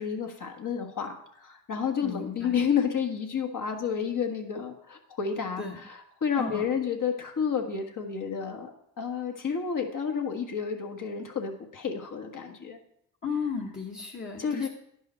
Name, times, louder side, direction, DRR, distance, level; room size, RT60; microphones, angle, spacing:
voice 1, 0.0-8.7 9.0-12.8 14.4-14.7, left 7 dB, 50° left, 3 dB, 1.5 m, -30 dB
voice 2, 2.0-2.6 5.6-5.8 6.4-6.7 13.2-14.7, left 5 dB, 30° left, -2 dB, 1.1 m, -34 dB
10.0 x 5.5 x 4.3 m, 0.73 s
cardioid pair, 75°, 39 cm